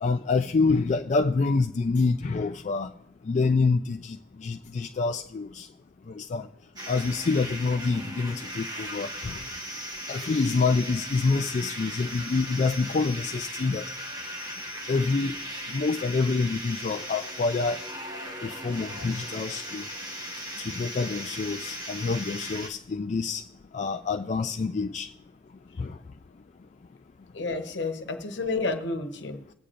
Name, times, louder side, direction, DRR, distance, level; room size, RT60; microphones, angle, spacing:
voice 1, 0.0-2.9 3.3-4.2 4.4-5.7 6.2-6.5 6.9-9.3 10.1-13.8 14.9-15.3 15.7-17.8 18.4-19.8 20.8-23.4 23.7-25.1 25.8-25.9, left 4 dB, 40° left, 0.3 m, -26 dB
sound 1, 6.8-22.7, equal, 20° right, 1.3 m, -37 dB
voice 2, 27.3-29.5, left 3 dB, 70° left, 1.1 m, -31 dB
21.0 x 8.4 x 2.5 m
head